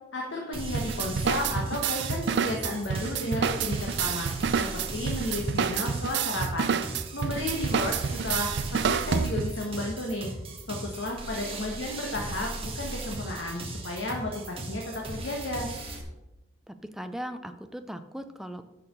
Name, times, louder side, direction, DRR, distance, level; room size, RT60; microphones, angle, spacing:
voice 1, 0.1-4.3 4.6-6.7 7.1-10.3 10.7-14.8 15.1-15.7, left 1 dB, 75° left, -1 dB, 1.3 m, -33 dB
sound 1, 0.5-16.0, right 2 dB, 30° right, 1.4 m, -38 dB
sound 2, 0.7-9.7, right 6 dB, 65° right, 0.4 m, -29 dB
voice 2, 16.7-18.6, equal, ahead, 8 dB, 0.4 m, -38 dB
6.9 x 5.8 x 6.5 m, 1.0 s
head